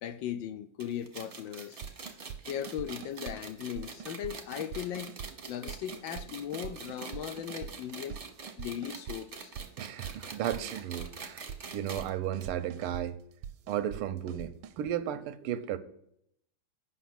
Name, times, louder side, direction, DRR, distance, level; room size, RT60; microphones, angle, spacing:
voice 1, 0.0-1.8 2.5-5.2 5.5-8.2 8.6-9.5, left 10 dB, 75° left, 1.2 m, -38 dB
sound 1, 0.8-12.1 12.4-12.5 12.8-12.9 13.7-13.8, right 4 dB, 35° right, 0.9 m, -45 dB
sound 2, 1.8-2.4 2.7-3.4 3.8-4.3 4.6-5.3 5.7-6.3 6.5-7.7 8.1-9.2 9.6-10.2 10.4-11.1 11.5-12.1 12.3-13.0 13.4-14.0 14.3-14.9, right 8 dB, 75° right, 1.2 m, -43 dB
voice 2, 9.8-11.4 11.7-13.2 13.7-15.8, right 10 dB, 90° right, 1.6 m, -34 dB
8.4 x 5.9 x 5.9 m
omnidirectional pair, 2.4 m